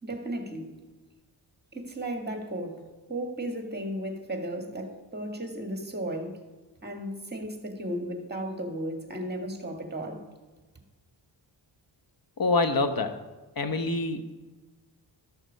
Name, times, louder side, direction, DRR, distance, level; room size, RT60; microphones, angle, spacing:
voice 1, 0.0-0.7 1.7-6.4 6.8-10.2, right 1 dB, 20° right, 2.0 m, -35 dB
voice 2, 12.4-13.1 13.6-14.2, left 3 dB, 50° left, 1.2 m, -25 dB
12.5 x 6.4 x 5.2 m
cardioid pair, 65°, 46 cm